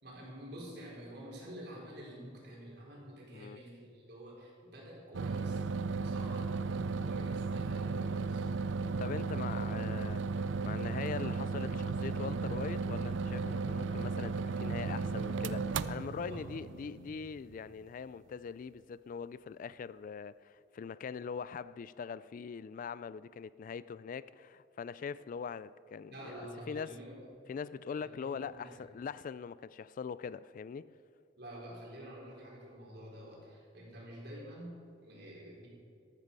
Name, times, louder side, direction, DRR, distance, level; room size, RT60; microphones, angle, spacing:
voice 1, 0.0-5.6 6.0-8.5 16.2-16.4 26.1-27.2 27.9-28.7 31.4-35.7, equal, 60° right, 4.4 m, -48 dB
sound 1, 5.1-17.7, right 4 dB, 90° right, 0.4 m, -35 dB
voice 2, 9.0-26.3 26.7-27.0 27.5-31.0, left 6 dB, 45° left, 0.3 m, -42 dB
13.0 x 13.0 x 5.4 m
head